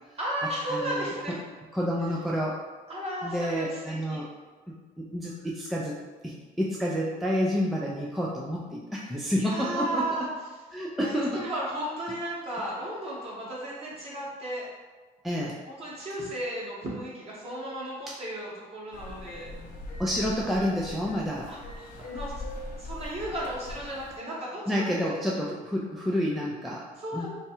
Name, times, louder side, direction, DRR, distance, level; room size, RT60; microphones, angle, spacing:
voice 1, 0.2-1.3 2.9-4.2 9.4-10.3 10.7-14.7 15.7-19.5 21.5-22.3 22.8-24.8 27.0-27.3, right 1 dB, 35° right, -6 dB, 1.4 m, -34 dB
voice 2, 0.7-1.1 1.7-2.6 3.2-4.3 4.7-6.0 6.2-10.2 10.7-11.5 15.2-15.6 18.1-18.2 20.0-21.5 24.7-26.9 27.1-27.3, equal, ahead, -4 dB, 0.4 m, -29 dB
sound 1, 18.9-24.2, left 2 dB, 50° left, 0.6 m, -41 dB
3.2 x 2.4 x 4.3 m, 1.3 s
cardioid pair, 110°, 17 cm